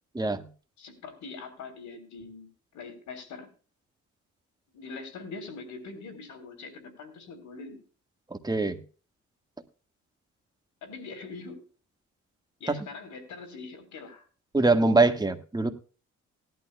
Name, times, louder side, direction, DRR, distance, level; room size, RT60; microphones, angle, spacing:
voice 1, 0.1-0.4 8.3-8.8 12.7-12.8 14.5-15.7, right 3 dB, 15° right, 7 dB, 1.5 m, -23 dB
voice 2, 0.8-3.5 4.7-7.8 10.8-11.6 12.6-14.3, left 4 dB, 70° left, 7 dB, 3.8 m, -43 dB
19.0 x 11.5 x 2.2 m, 0.37 s
cardioid pair, 90°, 30 cm